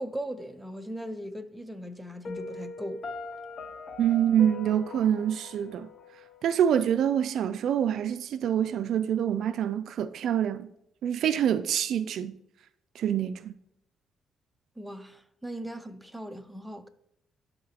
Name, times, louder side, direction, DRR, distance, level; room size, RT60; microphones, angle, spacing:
voice 1, 0.0-3.0 14.8-16.9, equal, 5° right, 0.6 m, -38 dB
Piano, 2.2-7.2, left 3 dB, 50° left, 0.7 m, -42 dB
voice 2, 4.0-5.9 6.4-10.7 11.0-12.3 13.0-13.5, right 9 dB, 70° right, 0.3 m, -26 dB
11.5 x 3.9 x 2.9 m
cardioid pair, 90°, 0 cm